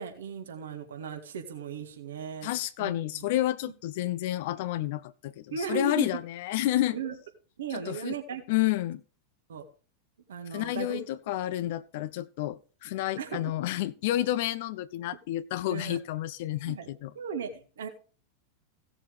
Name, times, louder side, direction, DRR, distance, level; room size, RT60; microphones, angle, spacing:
voice 1, 0.0-2.5 2.8-3.2 5.5-6.2 6.9-7.1 7.6-8.4 9.5-9.6 10.3-11.0 13.2-13.4 15.7-16.0 16.7-16.9 17.1-17.9, right 6 dB, 65° right, 1.9 m, -36 dB
voice 2, 2.4-7.0 7.7-8.1 8.5-9.0 10.5-17.1, left 14 dB, 50° left, 0.5 m, -30 dB
16.5 x 6.9 x 3.3 m
figure-of-eight pair, 90°, 0 cm